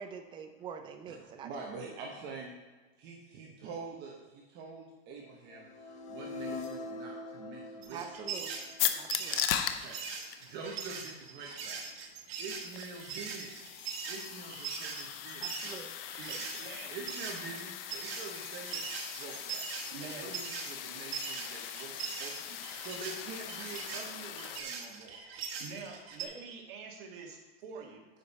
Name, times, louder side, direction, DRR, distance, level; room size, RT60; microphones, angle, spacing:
voice 1, 0.0-1.5 1.8-1.9 7.9-8.7 9.0-9.4 15.4-15.9, right 6 dB, 15° right, 6 dB, 0.5 m, -45 dB
voice 2, 1.1-2.6 3.0-8.1 9.7-10.0 10.4-11.8 12.4-13.7 14.1-15.5 16.3-16.6 16.9-18.8 19.2-25.2, right 4 dB, 35° right, -1 dB, 1.0 m, -46 dB
sound 1, 5.5-9.5, left 2 dB, 25° left, 0.7 m, -43 dB
sound 2, 7.8-16.6 17.0-26.3, right 6 dB, 75° right, 1.6 m, -41 dB
sound 3, 8.8-24.6, left 10 dB, 65° left, 0.7 m, -39 dB
voice 3, 16.2-17.0 19.9-20.3 25.6-28.1, right 5 dB, 55° right, 0 dB, 1.9 m, -46 dB
9.4 x 5.2 x 4.2 m, 1.2 s
supercardioid pair, 155°, 31 cm